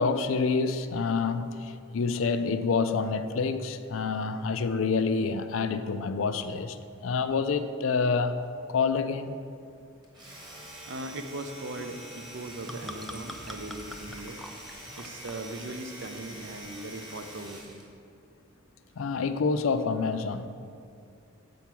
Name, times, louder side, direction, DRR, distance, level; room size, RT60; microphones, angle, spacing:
voice 1, 0.0-6.8 7.0-8.4 8.7-9.3 19.0-20.5, left 4 dB, 85° left, 0.4 m, -27 dB
Domestic sounds home sounds, 10.0-17.9, right 1 dB, 20° right, 1.5 m, -45 dB
voice 2, 10.9-14.4 15.0-17.9, right 2 dB, 65° right, 0.6 m, -39 dB
sound 1, 12.7-17.8, left 1 dB, ahead, 0.4 m, -46 dB
7.1 x 4.6 x 6.1 m
head